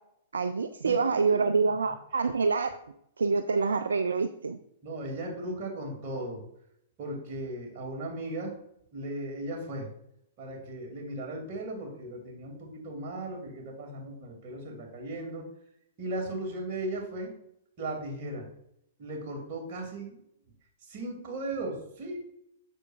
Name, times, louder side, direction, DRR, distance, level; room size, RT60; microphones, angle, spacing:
voice 1, 0.3-2.8 3.2-4.6, right 4 dB, 75° right, 10 dB, 0.4 m, -26 dB
voice 2, 0.8-1.4 4.8-6.4 7.0-8.5 8.9-9.9 10.4-15.5 16.0-17.3 17.8-18.5 19.0-20.2 20.9-22.2, right 1 dB, 45° right, 0 dB, 2.4 m, -37 dB
8.0 x 6.9 x 2.4 m, 0.76 s
figure-of-eight pair, 110°, 0 cm